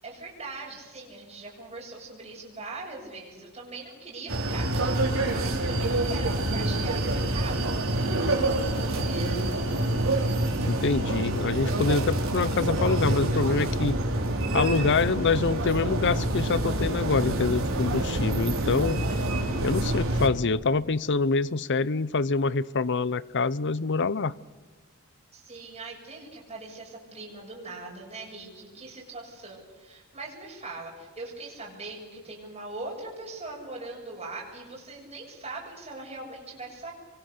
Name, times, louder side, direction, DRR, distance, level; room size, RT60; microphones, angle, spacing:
voice 1, 0.0-9.5 25.3-36.9, right 3 dB, 30° right, -4 dB, 7.2 m, -41 dB
sound 1, 4.3-20.3, right 1 dB, 65° right, 4.8 m, -27 dB
voice 2, 10.7-14.0 14.5-19.0 19.6-24.3, left 4 dB, 55° left, 18 dB, 0.7 m, -26 dB
28.0 x 24.0 x 6.8 m, 1.3 s
head